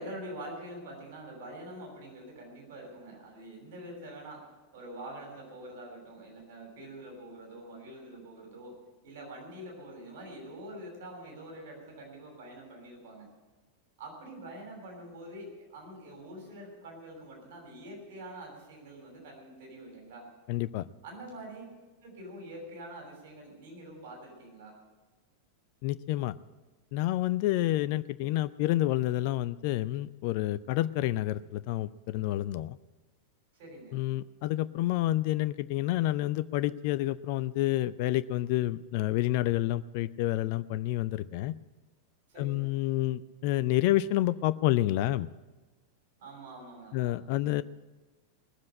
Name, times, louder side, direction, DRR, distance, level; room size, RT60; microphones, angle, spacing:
voice 1, 0.0-4.4 4.7-8.8 9.0-13.3 14.0-20.3 21.0-21.6 22.0-24.7 33.5-34.1 42.3-42.7 46.2-47.6, right 1 dB, 55° right, 0 dB, 6.4 m, -45 dB
voice 2, 20.5-20.8 25.8-26.3 26.9-32.8 33.9-41.5 42.4-45.3 46.9-47.6, left 15 dB, 45° left, 15 dB, 0.4 m, -29 dB
19.5 x 7.6 x 8.8 m, 1.2 s
figure-of-eight pair, 90°, 0 cm